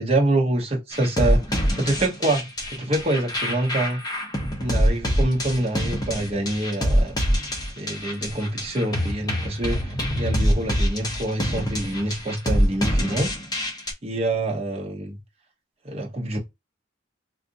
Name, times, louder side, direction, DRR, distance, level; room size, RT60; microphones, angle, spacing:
voice 1, 0.0-4.0 4.6-7.1 7.8-13.3 14.0-15.2 15.8-16.4, right 1 dB, 30° right, 0.8 m, -26 dB
sound 1, 0.9-13.9, equal, 20° left, 0.7 m, -25 dB
3.7 x 2.5 x 2.5 m
head